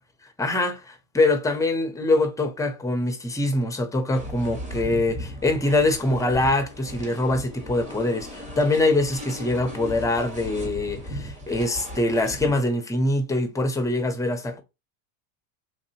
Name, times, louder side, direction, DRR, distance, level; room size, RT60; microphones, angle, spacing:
voice 1, 0.4-14.6, left 2 dB, 10° left, 0.5 m, -24 dB
sound 1, 4.1-12.5, equal, 15° right, 1.3 m, -37 dB
3.4 x 2.7 x 2.7 m
supercardioid pair, 120°, 42 cm